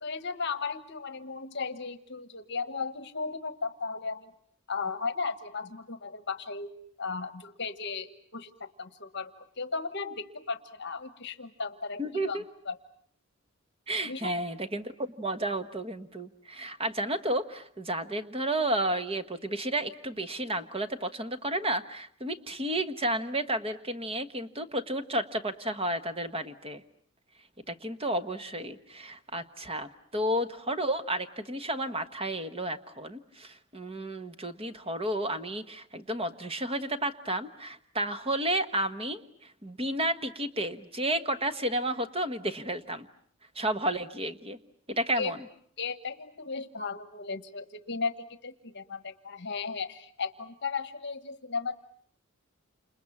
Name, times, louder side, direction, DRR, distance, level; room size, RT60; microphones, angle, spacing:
voice 1, 0.0-4.3 4.7-6.7 7.0-12.8 14.0-14.3 45.2-45.3 45.8-51.8, left 4 dB, 55° left, 11 dB, 1.3 m, -35 dB
voice 2, 12.0-12.4 13.9-26.8 27.7-43.1 43.5-44.6 44.9-45.4, right 1 dB, 25° right, 9 dB, 1.3 m, -32 dB
29.5 x 28.0 x 7.2 m, 0.62 s
head